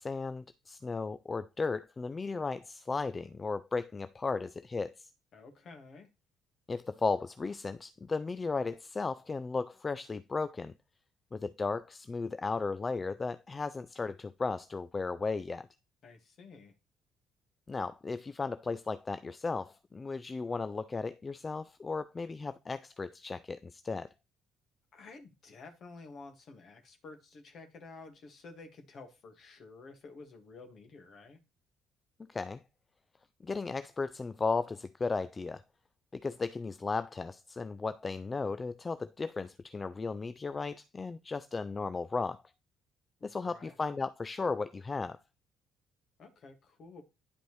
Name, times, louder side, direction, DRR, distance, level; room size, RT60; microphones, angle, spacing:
voice 1, 0.0-5.1 6.7-10.7 11.3-15.7 17.7-24.1 32.3-32.6 33.4-35.6 36.1-42.4 43.2-45.2, left 4 dB, 30° left, 0.4 m, -35 dB
voice 2, 5.3-6.1 16.0-16.7 24.9-31.4 43.2-43.7 46.2-47.0, left 3 dB, 55° left, 1.9 m, -51 dB
10.5 x 5.1 x 3.2 m
hypercardioid pair, 50°, 0 cm